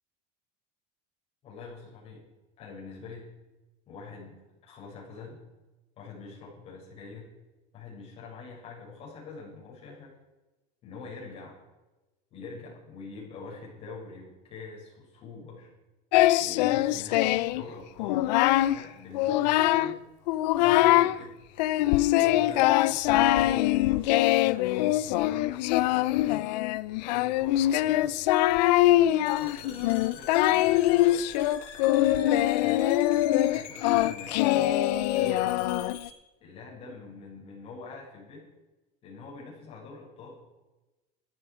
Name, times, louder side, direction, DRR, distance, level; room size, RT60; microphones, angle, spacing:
voice 1, 1.4-2.2 2.6-3.3 3.9-5.4 6.0-7.3 7.7-10.1 10.8-11.6 12.3-15.7 16.4-18.3 18.7-20.0 20.6-21.4 22.1-26.5 27.0-28.2 28.8-31.2 32.2-32.9 33.4-34.8 35.1-35.7 36.4-38.5 39.0-40.4, left 4 dB, 30° left, -4 dB, 6.9 m, -44 dB
Singing, 16.1-17.6 18.0-18.8 19.1-20.0 20.3-21.2 21.6-36.1, left 15 dB, 85° left, 0.6 m, -23 dB
sound 1, 29.3-36.1, left 8 dB, 65° left, 3.7 m, -45 dB
18.0 x 13.0 x 5.0 m, 1.1 s
cardioid pair, 175°, 21 cm